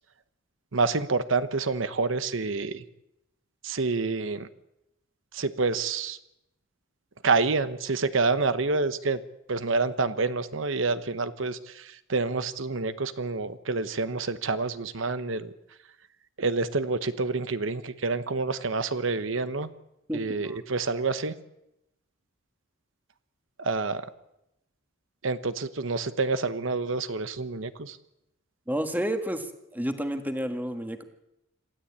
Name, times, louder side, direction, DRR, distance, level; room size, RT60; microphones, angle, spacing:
voice 1, 0.7-2.8 3.6-4.5 5.3-6.2 7.2-9.2 9.5-11.8 12.1-15.5 16.4-19.7 20.1-21.3 23.6-24.0 25.2-28.0, right 3 dB, 70° right, 12 dB, 0.9 m, -28 dB
voice 2, 20.1-20.6 28.7-29.5 29.7-31.0, equal, 10° right, 7 dB, 1.6 m, -30 dB
27.0 x 13.5 x 8.7 m, 0.87 s
head